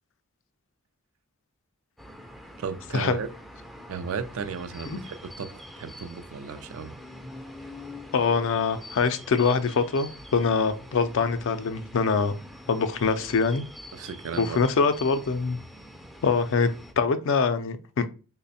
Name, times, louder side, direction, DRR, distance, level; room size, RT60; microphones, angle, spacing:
sound 1, 2.0-16.9, left 1 dB, ahead, 0.4 m, -45 dB
voice 1, 2.6-3.3 3.9-6.9 13.9-14.6, right 6 dB, 70° right, 0.4 m, -35 dB
voice 2, 8.1-12.3 12.7-13.7 14.4-15.6 16.2-16.7 17.0-18.1, left 5 dB, 60° left, 0.4 m, -24 dB
3.3 x 2.1 x 4.0 m
head